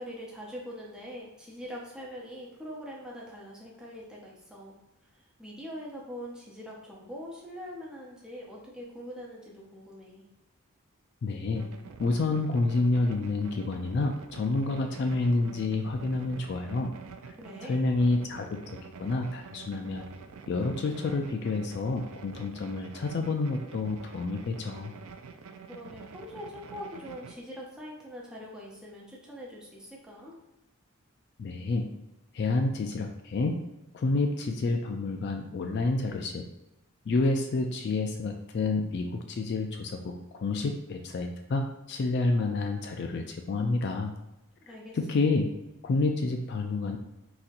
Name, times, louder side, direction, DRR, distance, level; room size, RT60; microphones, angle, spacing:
voice 1, 0.0-4.8 5.4-10.3 17.4-17.9 25.7-30.4 44.6-45.0, equal, 5° right, -4 dB, 0.6 m, -43 dB
voice 2, 11.2-11.7 12.0-16.9 17.6-18.5 19.0-20.1 20.5-24.9 31.4-31.9 32.3-33.6 33.9-36.4 37.1-44.1 44.7-45.5 45.8-47.0, left 3 dB, 50° left, 4 dB, 0.3 m, -29 dB
sound 1, 11.5-27.4, right 5 dB, 70° right, 0.3 m, -47 dB
3.9 x 2.8 x 2.5 m, 0.94 s
head